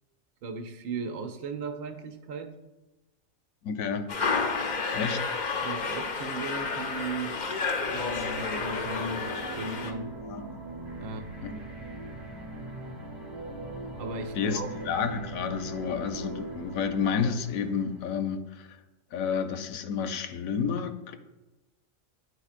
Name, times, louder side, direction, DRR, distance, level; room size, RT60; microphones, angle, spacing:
voice 1, 0.4-2.5 5.6-7.4 7.9-9.3 9.6-10.2 11.0-11.6 14.0-14.7, right 4 dB, 75° right, 7 dB, 1.0 m, -37 dB
voice 2, 3.6-4.1 4.9-5.2 10.2-10.5 11.4-11.5 14.4-18.8 19.1-21.2, left 6 dB, 75° left, 8 dB, 1.0 m, -30 dB
sound 1, 4.1-9.9, left 4 dB, 60° left, 0.4 m, -31 dB
sound 2, 7.7-18.2, right 2 dB, 45° right, 1.0 m, -41 dB
9.6 x 4.1 x 2.4 m, 1.1 s
omnidirectional pair, 1.5 m